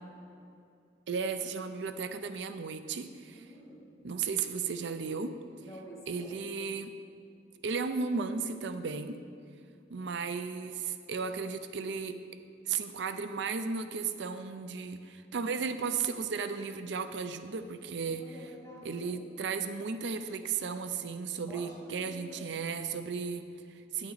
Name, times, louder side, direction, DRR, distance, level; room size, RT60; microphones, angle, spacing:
voice 1, 1.1-3.5 4.0-5.3 6.1-6.9 7.6-9.2 9.9-12.1 12.7-18.3 18.8-24.1, right 5 dB, 70° right, 9 dB, 0.5 m, -35 dB
voice 2, 3.3-3.9 5.6-6.4 18.0-19.3 21.5-22.5, equal, 15° left, -6 dB, 2.3 m, -49 dB
9.8 x 9.2 x 4.0 m, 2.5 s
head